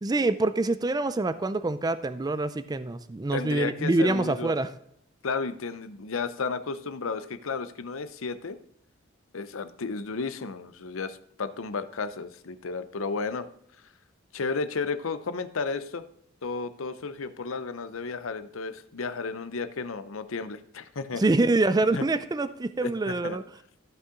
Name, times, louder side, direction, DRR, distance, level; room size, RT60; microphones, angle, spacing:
voice 1, 0.0-4.7 21.2-23.4, right 2 dB, 20° right, 13 dB, 0.4 m, -25 dB
voice 2, 3.3-4.5 5.2-8.6 9.3-13.5 14.3-16.0 16.4-21.2 21.9-22.0 22.8-23.4, left 4 dB, 85° left, 12 dB, 0.7 m, -33 dB
14.0 x 5.6 x 3.8 m, 0.68 s
head